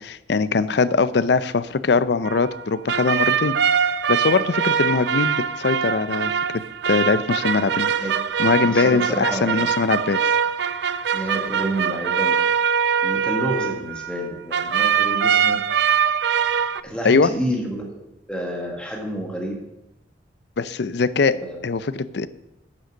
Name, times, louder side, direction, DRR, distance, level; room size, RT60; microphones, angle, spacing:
voice 1, 0.0-3.6 4.1-7.9 8.4-10.2 17.0-17.3 20.6-21.4 21.6-22.3, left 4 dB, 65° left, 15 dB, 0.5 m, -21 dB
sound 1, 2.2-14.3 14.5-16.8, right 7 dB, 65° right, 0.4 m, -23 dB
voice 2, 8.6-9.6 11.1-12.3 13.0-15.6 16.8-18.0 18.3-19.6 21.4-21.7, right 1 dB, 5° left, 0 dB, 1.3 m, -29 dB
9.8 x 6.5 x 6.2 m, 0.92 s
head